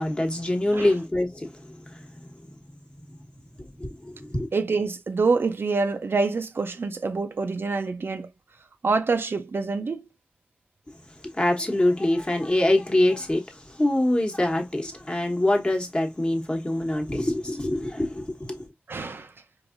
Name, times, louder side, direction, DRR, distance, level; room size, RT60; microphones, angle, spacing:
voice 1, 0.0-2.2 3.6-4.5 11.2-18.7, left 1 dB, 25° left, 1.0 m, -25 dB
voice 2, 4.5-8.3 8.8-10.0 18.9-19.3, right 4 dB, 80° right, 0.5 m, -26 dB
4.7 x 2.6 x 2.4 m
wide cardioid pair, 85°, 4 cm